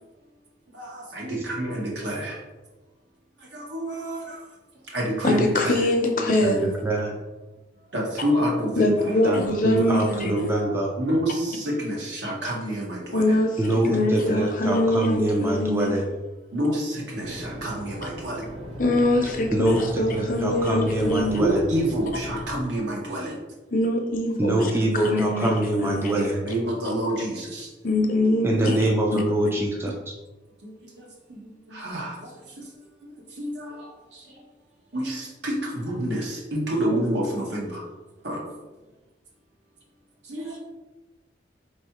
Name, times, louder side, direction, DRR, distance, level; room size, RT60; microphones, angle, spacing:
voice 1, 0.7-2.4 3.5-4.4 4.9-5.8 7.9-9.1 10.4-13.3 13.9-14.0 16.5-18.4 21.3-23.4 26.1-27.7 30.6-32.3 32.6-32.7 33.4-34.2 34.9-37.8 38.2-38.4 40.3-40.6, equal, 80° right, -3 dB, 1.2 m, -28 dB
voice 2, 5.2-6.7 8.8-10.5 13.1-15.9 18.8-21.4 23.7-26.2 26.9-27.0 27.8-29.2, left 1 dB, 45° left, 3 dB, 0.6 m, -23 dB
voice 3, 6.2-7.2 9.2-10.9 13.6-16.0 19.5-21.6 24.4-26.4 28.4-30.1, right 1 dB, 15° right, -1 dB, 0.4 m, -24 dB
sound 1, 17.2-22.6, equal, 30° right, 0.7 m, -37 dB
4.4 x 3.1 x 2.9 m, 1.2 s
head